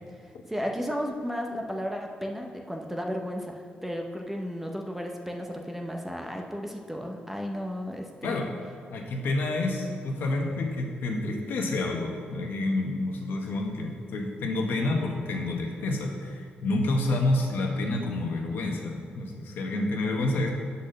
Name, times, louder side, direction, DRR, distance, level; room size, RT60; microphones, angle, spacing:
voice 1, 0.5-8.5, equal, 5° right, 2 dB, 0.6 m, -34 dB
voice 2, 8.9-20.5, left 2 dB, 75° left, 1 dB, 1.1 m, -29 dB
8.4 x 4.1 x 6.4 m, 2.3 s
cardioid pair, 130°, 4 cm